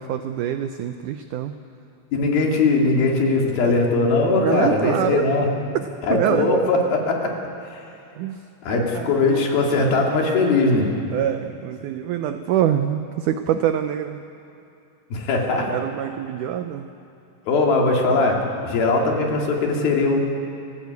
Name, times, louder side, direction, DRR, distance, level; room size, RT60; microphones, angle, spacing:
voice 1, 0.0-1.5 4.4-5.2 6.1-6.7 8.2-8.4 8.7-9.5 11.1-14.2 15.7-16.9, right 10 dB, 85° right, 9 dB, 1.7 m, -25 dB
voice 2, 2.1-5.5 6.1-7.4 7.6-7.8 8.6-10.9 15.1-15.7 17.5-20.2, left 3 dB, 70° left, 0 dB, 4.2 m, -20 dB
28.5 x 15.0 x 8.3 m, 2.8 s
omnidirectional pair, 4.4 m